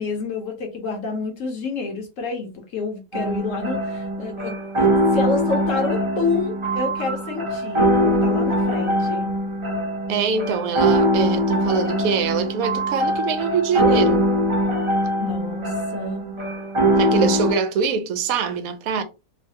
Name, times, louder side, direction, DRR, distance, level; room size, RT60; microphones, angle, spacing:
voice 1, 0.0-9.3 15.2-16.3, left 4 dB, 60° left, 1.1 m, -28 dB
sound 1, 3.1-17.5, equal, 30° right, 0.6 m, -22 dB
voice 2, 10.1-14.3 17.0-19.0, right 6 dB, 70° right, 1.0 m, -23 dB
3.1 x 2.2 x 2.7 m
omnidirectional pair, 1.7 m